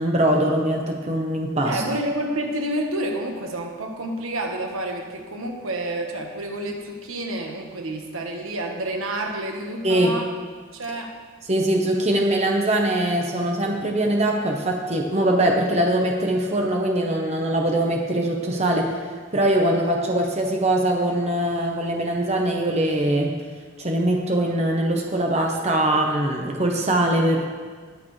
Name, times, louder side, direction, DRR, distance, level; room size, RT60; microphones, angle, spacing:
voice 1, 0.0-1.8 9.8-10.1 11.5-18.9 19.3-23.3 23.8-27.4, right 1 dB, 30° right, 0 dB, 1.0 m, -22 dB
voice 2, 1.6-10.3 10.7-11.1, right 1 dB, 80° right, 2 dB, 1.3 m, -29 dB
20.0 x 6.8 x 3.3 m, 1.5 s
head